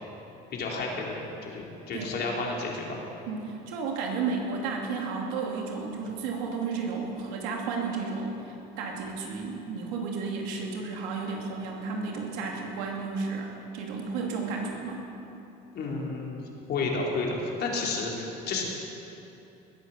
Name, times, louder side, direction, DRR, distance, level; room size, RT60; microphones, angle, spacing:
voice 1, 0.5-1.2 1.5-3.0 15.7-16.4 16.7-18.6, left 3 dB, 55° left, -2 dB, 3.6 m, -31 dB
voice 2, 3.3-15.1, right 4 dB, 90° right, 0 dB, 2.6 m, -33 dB
20.0 x 9.1 x 7.2 m, 2.9 s
supercardioid pair, 95°, 21 cm